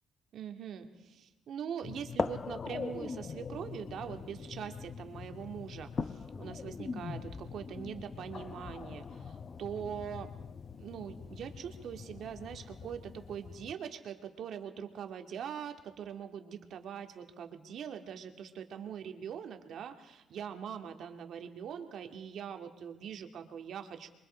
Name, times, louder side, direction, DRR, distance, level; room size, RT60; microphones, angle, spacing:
voice 1, 0.3-10.3 10.8-24.1, right 8 dB, 70° right, 5 dB, 2.2 m, -42 dB
sound 1, 1.8-13.7, left 5 dB, 40° left, 0.8 m, -41 dB
28.0 x 23.5 x 4.5 m, 0.99 s
cardioid pair, 90°, 0 cm